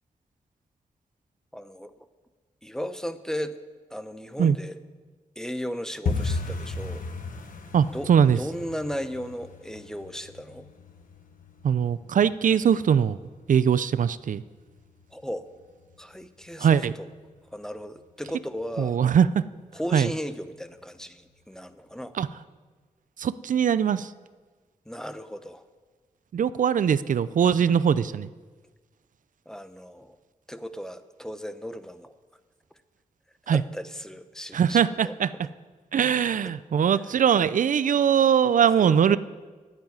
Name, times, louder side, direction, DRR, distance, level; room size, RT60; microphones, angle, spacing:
voice 1, 1.5-1.9 2.6-3.6 3.9-4.8 5.4-7.0 7.9-8.1 8.4-10.7 15.1-15.5 16.0-17.1 17.5-19.0 19.7-22.2 24.9-25.6 27.6-27.8 29.5-30.2 30.5-32.1 33.5-35.1 36.0-36.1 36.4-36.5 38.8-39.2, equal, 5° left, 11 dB, 0.8 m, -36 dB
sound 1, 6.0-16.8 17.0-17.7 18.0-18.3 18.5-18.9 19.2-19.3 19.8-20.4 20.7-20.8 21.3-21.4, left 3 dB, 80° left, 1.2 m, -37 dB
voice 2, 7.7-8.4 11.6-13.2 13.5-14.4 16.6-16.9 18.8-19.4 19.9-20.1 22.2-22.3 23.2-24.1 26.3-28.3 33.5-33.6 34.5-35.3 35.9-39.2, right 8 dB, 70° right, 16 dB, 0.4 m, -21 dB
9.7 x 8.9 x 9.5 m, 1.4 s
cardioid pair, 75°, 14 cm